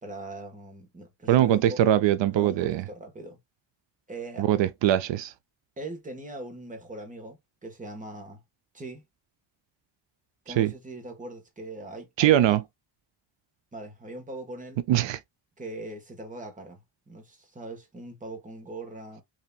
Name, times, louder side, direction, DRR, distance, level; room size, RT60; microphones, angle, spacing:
voice 1, 0.0-1.8 2.3-3.4 4.1-4.5 5.8-8.4 8.7-9.0 10.4-12.6 13.7-14.8 15.6-19.2, right 2 dB, 15° right, 1.2 m, -41 dB
voice 2, 1.3-2.8 4.4-5.3 10.5-10.7 12.2-12.6 14.9-15.2, right 12 dB, 80° right, 0.6 m, -22 dB
5.6 x 2.8 x 2.3 m
wide cardioid pair, 165°, 44 cm